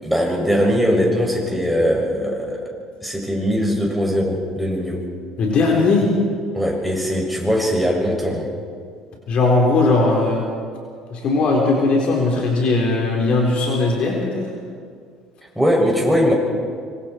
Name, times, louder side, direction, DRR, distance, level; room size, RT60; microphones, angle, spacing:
voice 1, 0.0-2.7 3.0-5.0 6.5-8.5 15.6-16.3, equal, ahead, -1 dB, 6.9 m, -20 dB
voice 2, 5.4-6.1 9.3-10.4 11.1-14.4, left 3 dB, 50° left, -1 dB, 4.1 m, -18 dB
25.5 x 23.5 x 4.6 m, 2.1 s
hypercardioid pair, 60°, 2 cm